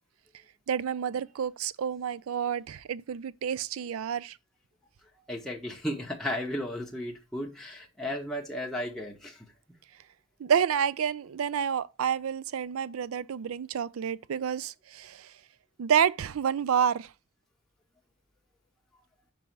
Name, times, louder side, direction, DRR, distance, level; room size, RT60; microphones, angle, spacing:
voice 1, 0.7-4.4 10.4-15.3 15.8-17.1, right 8 dB, 85° right, 0.4 m, -29 dB
voice 2, 5.3-9.5, left 1 dB, ahead, 0.8 m, -34 dB
5.3 x 4.7 x 4.5 m
head